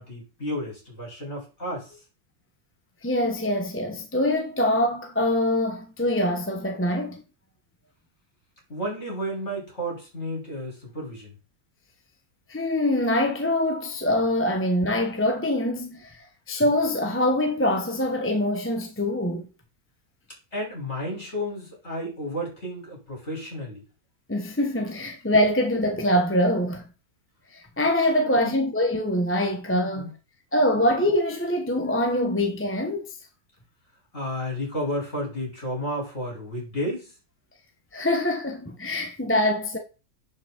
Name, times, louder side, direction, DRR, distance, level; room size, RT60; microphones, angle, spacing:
voice 1, 0.0-2.0 8.7-11.3 20.5-23.8 28.0-28.5 29.7-30.1 34.1-37.1, equal, 45° left, 6.5 m, -32 dB
voice 2, 3.0-7.2 12.5-19.5 24.3-26.8 27.5-30.1 30.5-33.1 37.9-39.8, left 1 dB, 10° left, 1.0 m, -24 dB
11.0 x 5.5 x 4.4 m
omnidirectional pair, 1.6 m